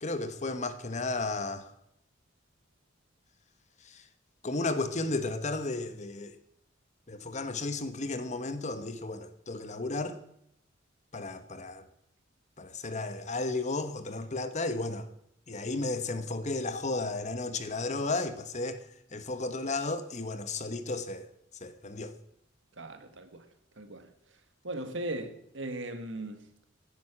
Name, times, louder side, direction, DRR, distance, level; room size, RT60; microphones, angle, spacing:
voice 1, 0.0-1.7 3.8-4.0 4.4-6.4 7.1-10.2 11.1-11.8 12.6-15.1 15.5-18.8 19.1-21.3 21.6-22.1, left 2 dB, 35° left, 1.1 m, -33 dB
voice 2, 22.8-23.4 23.8-24.0 24.6-26.4, right 1 dB, 65° right, 1.7 m, -38 dB
16.5 x 10.5 x 6.1 m
head